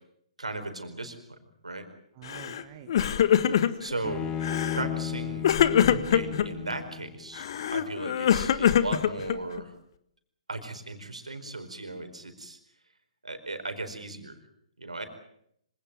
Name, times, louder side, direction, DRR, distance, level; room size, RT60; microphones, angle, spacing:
voice 1, 0.4-1.2 1.6-1.8 3.8-4.3 4.7-5.5 6.1-9.7 10.5-12.6 13.2-14.4 14.8-15.0, right 2 dB, 80° right, 8 dB, 4.7 m, -36 dB
voice 2, 2.2-3.6 5.8-6.0, right 11 dB, 35° right, 7 dB, 1.9 m, -46 dB
Crying sobbing, 2.3-2.6 2.9-3.9 4.4-4.9 5.4-6.5 7.4-9.6, left 9 dB, 45° left, 1.6 m, -24 dB
Bowed string instrument, 4.0-7.3, left 9 dB, 20° left, 2.9 m, -34 dB
26.0 x 17.5 x 9.2 m, 0.72 s
figure-of-eight pair, 130°, 3 cm